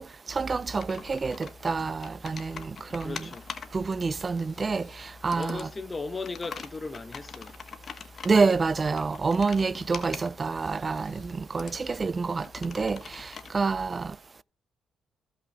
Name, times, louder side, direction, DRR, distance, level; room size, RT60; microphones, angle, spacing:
voice 1, 0.0-3.1 3.7-5.6 8.2-14.2, right 4 dB, 30° right, 0.4 m, -28 dB
Computer keyboard, 0.6-13.5, left 6 dB, 50° left, 1.2 m, -45 dB
voice 2, 3.0-3.5 5.3-7.6 11.0-11.1 11.6-12.0, left 3 dB, 25° left, 1.0 m, -37 dB
14.5 x 5.7 x 3.4 m
cardioid pair, 90°, 0 cm